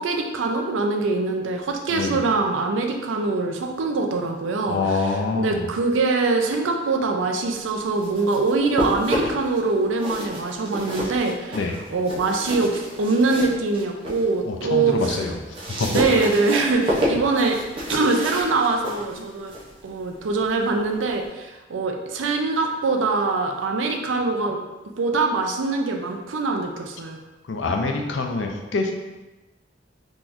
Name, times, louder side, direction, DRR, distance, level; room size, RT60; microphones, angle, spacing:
voice 1, 0.0-4.8 5.3-11.6 11.9-15.2 15.9-17.6 17.9-19.5 19.8-24.6 25.0-27.2, right 3 dB, 85° right, 3 dB, 0.5 m, -23 dB
voice 2, 1.9-2.2 4.7-5.7 11.5-11.8 14.4-15.4 15.8-15.9 27.4-28.9, left 3 dB, 75° left, 3 dB, 0.5 m, -25 dB
sound 1, 7.7-9.6 9.9-14.3 14.7-21.3, equal, 30° right, 0.8 m, -30 dB
3.8 x 3.0 x 2.5 m, 1.1 s
head